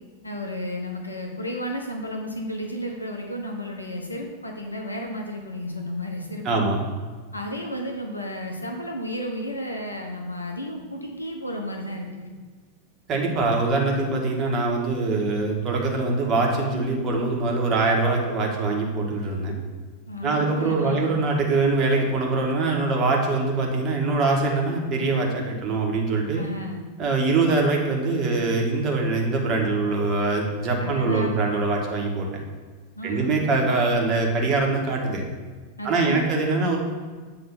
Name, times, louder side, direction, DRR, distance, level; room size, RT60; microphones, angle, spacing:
voice 1, 0.2-6.7 7.3-12.3 20.1-21.0 26.3-26.9 30.8-31.4 32.9-33.4 35.8-36.3, equal, 85° left, 2 dB, 0.9 m, -32 dB
voice 2, 6.4-6.8 13.1-19.5 20.2-26.4 27.0-32.3 33.0-35.2 35.8-36.8, right 3 dB, 30° right, 0 dB, 1.5 m, -23 dB
7.7 x 3.3 x 5.8 m, 1.5 s
figure-of-eight pair, 90°, 0 cm